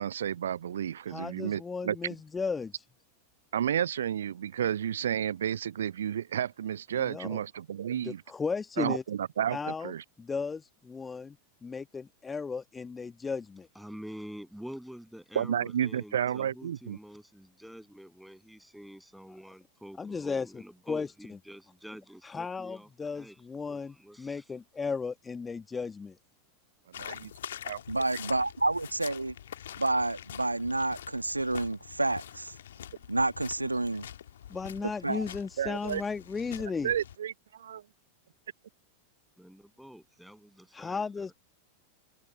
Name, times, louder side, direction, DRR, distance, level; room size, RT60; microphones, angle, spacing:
voice 1, 0.0-2.0 3.5-8.2 8.8-9.6 9.8-10.0 15.4-17.0 27.0-27.3 27.6-27.8 35.6-36.0 36.8-37.8, right 9 dB, 65° right, 0.4 m, -31 dB
voice 2, 1.1-2.8 7.0-7.4 8.0-9.0 9.5-11.4 11.6-13.7 19.3-19.4 20.0-20.6 20.9-21.1 22.2-26.2 34.5-36.9 40.7-41.3, left 5 dB, 15° left, 1.2 m, -35 dB
voice 3, 13.7-23.4 23.7-24.5 39.4-41.3, equal, ahead, 7.9 m, -47 dB
sound 1, 26.9-37.2, left 10 dB, 60° left, 1.7 m, -45 dB
voice 4, 27.9-29.3 29.8-32.5 33.1-34.1 35.0-35.3, right 2 dB, 85° right, 1.4 m, -29 dB
figure-of-eight pair, 90°, 0 cm